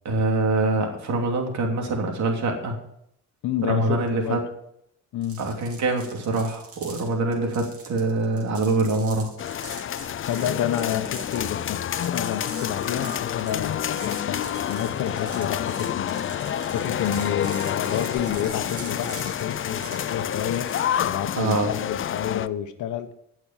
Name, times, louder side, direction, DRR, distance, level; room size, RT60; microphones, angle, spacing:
voice 1, 0.0-2.8 3.7-4.4 5.4-9.3 21.4-21.7, right 2 dB, 65° right, 2.9 m, -24 dB
voice 2, 3.4-4.4 5.1-5.5 10.2-14.4 14.7-20.8 21.0-23.1, left 10 dB, 80° left, 1.1 m, -29 dB
sound 1, 5.2-21.0, right 4 dB, 50° right, 3.0 m, -43 dB
sound 2, 9.4-22.5, left 10 dB, 45° left, 0.5 m, -28 dB
15.5 x 6.3 x 5.8 m
cardioid pair, 90°, 30 cm